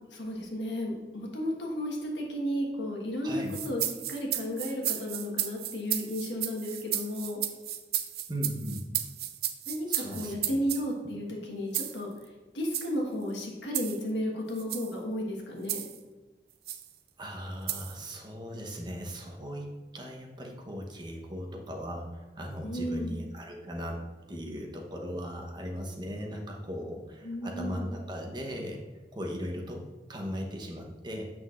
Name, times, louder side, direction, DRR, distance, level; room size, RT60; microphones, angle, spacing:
voice 1, 0.1-3.8 4.1-7.4 9.7-12.1 12.5-15.9 22.6-23.1 27.2-27.9, equal, 90° left, -1 dB, 1.4 m, -33 dB
sound 1, 3.5-10.8 11.7-12.0 12.6-12.9 13.7-14.0 14.6-14.9 15.7-16.0 16.7-16.9 17.7-18.0, right 12 dB, 60° right, 0.4 m, -33 dB
voice 2, 8.3-8.8 9.9-10.6 17.2-24.0 24.3-28.8 29.1-29.8 30.1-31.3, equal, 25° right, 0 dB, 0.9 m, -38 dB
7.6 x 6.0 x 2.5 m, 1.2 s
head